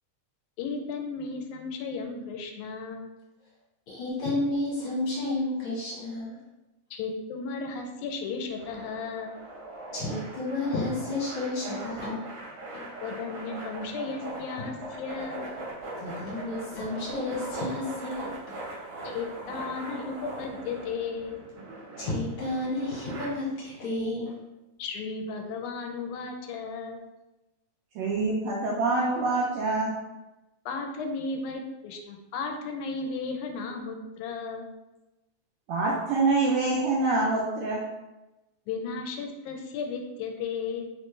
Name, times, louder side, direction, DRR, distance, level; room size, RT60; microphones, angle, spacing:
voice 1, 0.6-3.1 6.9-9.3 13.0-15.5 19.0-21.4 24.8-27.0 30.7-34.7 38.7-40.9, left 4 dB, 80° left, 4 dB, 1.9 m, -34 dB
voice 2, 3.9-6.4 9.9-12.3 12.7-12.9 14.6-14.7 16.0-18.6 19.1-19.2 19.5-19.8 22.0-24.4, left 2 dB, 60° left, -7 dB, 1.9 m, -31 dB
sound 1, 8.6-23.3, right 2 dB, 55° right, 1.6 m, -40 dB
voice 3, 27.9-29.9 35.7-37.8, right 3 dB, 80° right, -3 dB, 1.5 m, -25 dB
4.4 x 3.2 x 3.1 m, 1.0 s
omnidirectional pair, 3.4 m